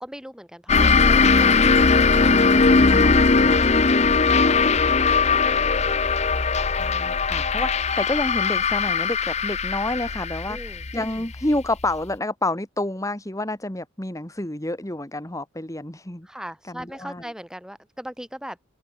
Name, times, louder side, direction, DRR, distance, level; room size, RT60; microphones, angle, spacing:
voice 1, 0.0-4.0 4.3-5.9 6.5-6.7 10.5-10.9 16.2-18.6, equal, 5° right, 7.3 m, -40 dB
sound 1, 0.7-11.9, left 4 dB, 35° left, 0.9 m, -19 dB
voice 2, 2.8-3.3 6.8-16.3 16.7-17.2, left 1 dB, 15° left, 1.8 m, -29 dB
open air
head